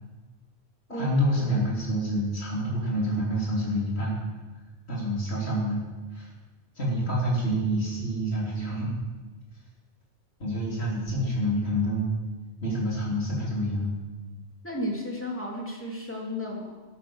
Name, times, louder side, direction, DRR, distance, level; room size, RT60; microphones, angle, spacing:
voice 1, 0.9-4.2 4.9-5.8 6.1-6.3 6.8-8.9 10.4-12.1 12.6-13.9, equal, 70° left, -4 dB, 3.8 m, -27 dB
voice 2, 14.6-16.8, equal, 10° left, -2 dB, 3.1 m, -33 dB
13.0 x 13.0 x 6.4 m, 1.3 s
omnidirectional pair, 1.1 m